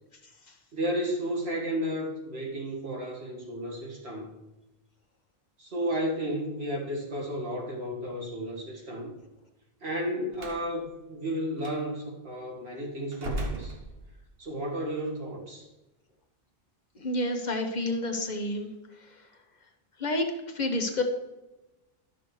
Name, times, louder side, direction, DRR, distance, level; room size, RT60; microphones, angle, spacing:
voice 1, 0.7-4.3 5.6-9.1 9.8-13.7 14.4-15.7, equal, 85° right, -3 dB, 2.0 m, -33 dB
Slam, 10.3-10.7 11.6-11.8 13.1-14.4, right 1 dB, 70° right, 1.3 m, -36 dB
voice 2, 16.9-18.7 19.0-19.1 20.0-21.0, left 1 dB, 45° left, 4 dB, 1.1 m, -29 dB
12.0 x 6.2 x 3.2 m, 1.0 s
omnidirectional pair, 1.0 m